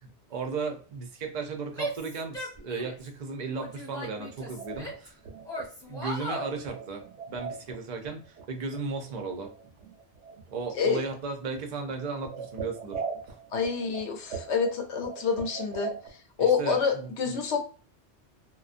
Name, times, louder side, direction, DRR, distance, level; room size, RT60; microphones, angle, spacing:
voice 1, 0.0-5.2 5.9-9.5 10.5-13.0 16.4-17.3, right 4 dB, 50° right, 4 dB, 0.6 m, -35 dB
Female speech woman speaking / Yell, 1.7-3.1 3.5-5.1 5.5-6.5, equal, 5° left, 1.0 m, -37 dB
sound 1, 4.3-8.8 9.1-9.2 9.4-10.5 10.9-11.2 11.5-11.6 11.8-16.1, right 5 dB, 80° right, 0.9 m, -40 dB
voice 2, 13.5-15.9 16.4-17.6, left 6 dB, 80° left, 4 dB, 1.0 m, -27 dB
2.5 x 2.1 x 2.4 m, 0.39 s
omnidirectional pair, 1.2 m